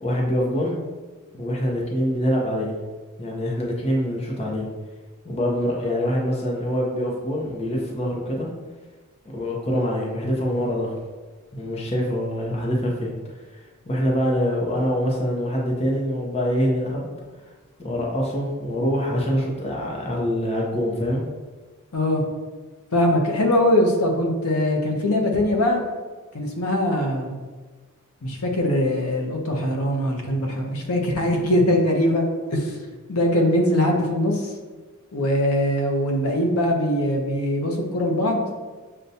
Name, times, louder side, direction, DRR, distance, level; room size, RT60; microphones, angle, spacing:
voice 1, 0.0-0.8 1.3-2.8 3.2-4.7 5.2-8.5 9.3-10.9 11.5-13.1 13.5-13.6 13.9-17.1 17.8-21.2, equal, 30° left, -3 dB, 0.6 m, -24 dB
voice 2, 21.9-22.2 22.9-25.8 26.3-27.4 28.2-32.2 32.5-32.8 33.1-34.5 35.1-38.4, left 1 dB, 75° left, 1 dB, 0.7 m, -22 dB
6.5 x 2.2 x 2.7 m, 1.3 s
head